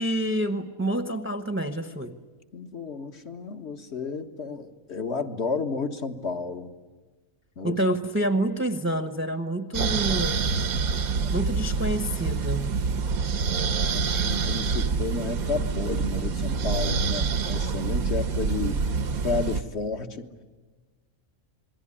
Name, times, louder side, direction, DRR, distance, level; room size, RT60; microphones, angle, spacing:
voice 1, 0.0-2.2 7.6-10.4 11.3-12.7, right 1 dB, 10° right, 9 dB, 0.9 m, -27 dB
voice 2, 2.5-6.7 7.6-7.8 11.2-11.3 13.9-18.8 19.2-20.3, left 4 dB, 50° left, 6 dB, 1.7 m, -32 dB
sound 1, 9.7-19.6, right 5 dB, 85° right, 1.6 m, -26 dB
28.0 x 22.0 x 9.9 m, 1.3 s
omnidirectional pair, 1.5 m